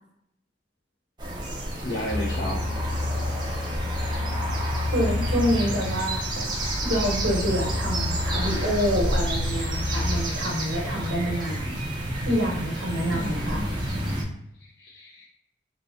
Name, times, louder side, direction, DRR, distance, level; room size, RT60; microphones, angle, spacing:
sound 1, 1.2-14.2, right 1 dB, 25° right, 0.7 m, -31 dB
voice 1, 1.8-2.6 3.5-3.6 6.3-6.5 13.1-13.7 14.6-15.3, equal, 65° left, -4 dB, 0.8 m, -33 dB
sound 2, 2.1-10.2, left 2 dB, 15° left, 0.6 m, -29 dB
voice 2, 4.9-6.2 6.8-11.8 12.2-13.6, equal, 70° right, -2 dB, 1.2 m, -27 dB
3.8 x 2.9 x 2.6 m, 0.76 s
head